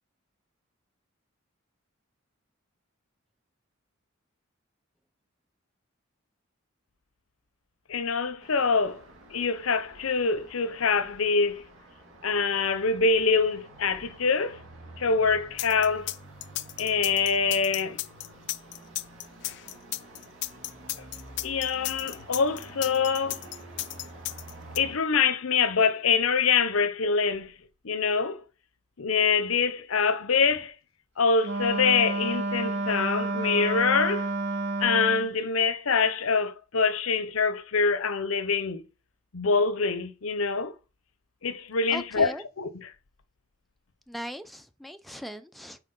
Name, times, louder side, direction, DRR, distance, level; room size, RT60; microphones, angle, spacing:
voice 1, 7.9-9.0 9.3-11.6 12.2-14.6 15.0-16.1 16.8-18.0 21.4-23.4 24.8-27.5 27.8-28.4 29.0-30.7 31.2-34.3 34.8-38.8 39.3-40.7 41.4-42.9, left 5 dB, 80° left, 0.8 m, -25 dB
Traffic noise roadway noise, 8.4-25.0, right 1 dB, 70° right, 2.5 m, -49 dB
sound 1, 15.6-24.8, left 17 dB, 55° left, 0.4 m, -34 dB
Wind instrument woodwind instrument, 31.4-35.3, right 2 dB, 55° right, 0.7 m, -30 dB
voice 2, 41.9-42.4 44.1-45.8, equal, ahead, 0.5 m, -39 dB
5.8 x 4.6 x 5.3 m
head